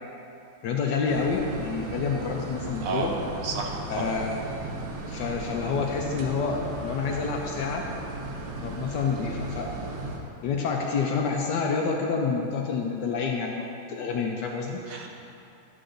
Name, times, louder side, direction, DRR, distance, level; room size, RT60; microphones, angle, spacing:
voice 1, 0.6-3.1 3.9-4.4 5.1-7.9 8.6-9.7 10.4-14.8, left 5 dB, 75° left, 1 dB, 1.2 m, -28 dB
sound 1, 1.1-10.2, right 2 dB, 90° right, 1.6 m, -36 dB
voice 2, 2.8-3.2 3.4-4.2 14.9-15.1, right 4 dB, 55° right, 0 dB, 1.1 m, -32 dB
11.0 x 7.7 x 2.6 m, 2.8 s
omnidirectional pair, 2.1 m